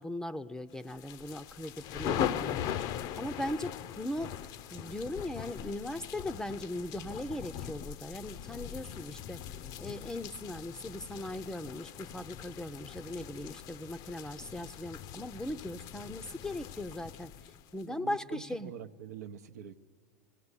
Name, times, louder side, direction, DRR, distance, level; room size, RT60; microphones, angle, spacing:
voice 1, 0.0-2.6 3.2-4.4 4.7-9.4 9.8-17.3 17.7-18.7, left 1 dB, 5° left, 15 dB, 0.5 m, -39 dB
sound 1, 0.9-17.8, left 10 dB, 50° left, 0.5 m, -40 dB
voice 2, 17.8-19.8, right 8 dB, 90° right, 8 dB, 0.7 m, -45 dB
18.5 x 17.0 x 9.8 m, 2.1 s
hypercardioid pair, 110°, 9 cm